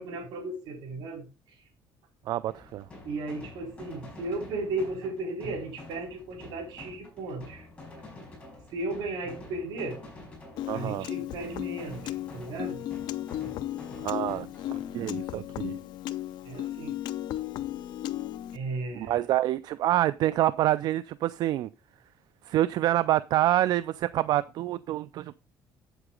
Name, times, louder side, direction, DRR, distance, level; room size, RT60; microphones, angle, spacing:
voice 1, 0.0-1.6 3.0-7.7 8.7-10.0 10.7-12.8 13.4-13.5 16.4-16.9 18.5-19.2, right 2 dB, 80° right, 4.3 m, -35 dB
voice 2, 2.3-2.9 10.7-11.1 14.0-15.8 19.0-21.7 22.4-25.3, right 14 dB, 65° right, 0.4 m, -27 dB
sound 1, 2.5-15.3, left 2 dB, 15° left, 4.8 m, -48 dB
Piano, 10.6-18.6, left 13 dB, 75° left, 0.6 m, -35 dB
8.3 x 7.9 x 3.8 m
cardioid pair, 155°, 8 cm